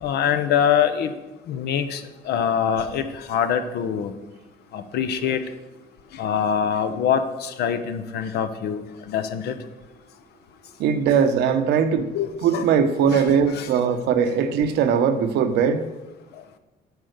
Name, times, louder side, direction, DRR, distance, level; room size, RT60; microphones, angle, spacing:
voice 1, 0.0-1.1 1.5-4.1 4.7-5.4 6.1-8.8 9.1-9.5 12.1-12.7 13.1-13.2 13.5-13.7, left 8 dB, 75° left, 9 dB, 0.9 m, -24 dB
voice 2, 10.8-12.1 12.4-15.8, right 7 dB, 80° right, 8 dB, 1.0 m, -20 dB
9.4 x 5.6 x 6.6 m, 1.1 s
cardioid pair, 110°, 17 cm